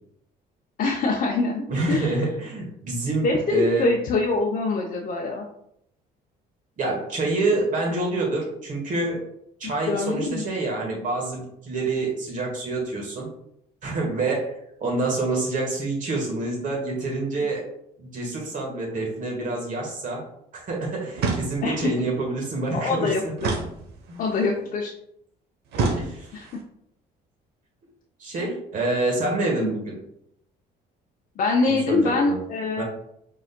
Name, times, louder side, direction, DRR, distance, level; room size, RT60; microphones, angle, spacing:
voice 1, 0.8-2.2 3.2-5.5 9.8-10.4 21.6-21.9 22.7-23.2 24.2-24.9 25.8-25.9 26.3-26.5 29.6-29.7 31.4-32.8, left 3 dB, 55° left, -2 dB, 0.6 m, -24 dB
voice 2, 1.7-3.8 6.8-9.2 9.6-13.3 13.8-14.5 14.8-17.6 18.0-20.2 20.5-23.3 24.1-24.5 25.9-26.3 28.2-30.0 31.7-32.4 32.8-32.9, right 2 dB, 50° right, -1 dB, 1.7 m, -27 dB
sound 1, 21.2-21.9 23.4-24.3 25.7-26.6, right 3 dB, 80° right, 0.9 m, -28 dB
5.0 x 4.0 x 2.2 m, 0.74 s
cardioid pair, 110°, 17 cm